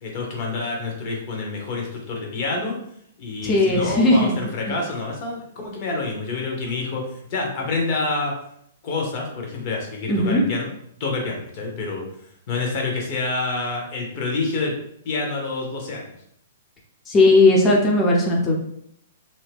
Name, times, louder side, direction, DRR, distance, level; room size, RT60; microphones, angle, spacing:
voice 1, 0.0-2.8 3.2-7.0 7.3-8.3 8.8-10.7 11.0-12.0 12.5-14.7 15.0-16.1, left 3 dB, 45° left, 0 dB, 0.9 m, -27 dB
voice 2, 3.4-4.4 4.7-4.8 10.1-10.4 17.1-18.5, left 2 dB, 20° left, -1 dB, 0.6 m, -17 dB
2.7 x 2.2 x 3.4 m, 0.71 s
hypercardioid pair, 125°, 0 cm